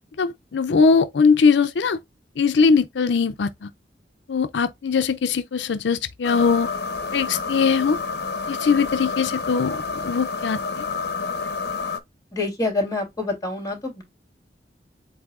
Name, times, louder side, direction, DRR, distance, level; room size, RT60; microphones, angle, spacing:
voice 1, 0.2-2.0 2.4-3.7 4.3-6.7 7.1-8.0 8.5-9.8 10.0-10.8, left 5 dB, 85° left, 0.5 m, -20 dB
sound 1, 6.2-12.0, left 4 dB, 65° left, 0.9 m, -29 dB
voice 2, 12.3-14.0, left 2 dB, 20° left, 3.1 m, -26 dB
8.1 x 2.7 x 2.4 m
head